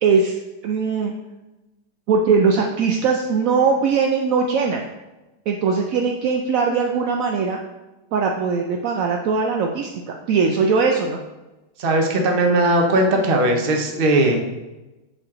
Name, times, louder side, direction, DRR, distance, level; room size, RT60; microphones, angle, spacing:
voice 1, 0.0-1.1 2.1-4.9 5.5-7.6 8.1-11.2, right 5 dB, 75° right, 2 dB, 0.7 m, -20 dB
voice 2, 11.8-14.4, right 1 dB, 40° right, 2 dB, 0.8 m, -18 dB
6.7 x 4.5 x 3.7 m, 1.1 s
omnidirectional pair, 1.9 m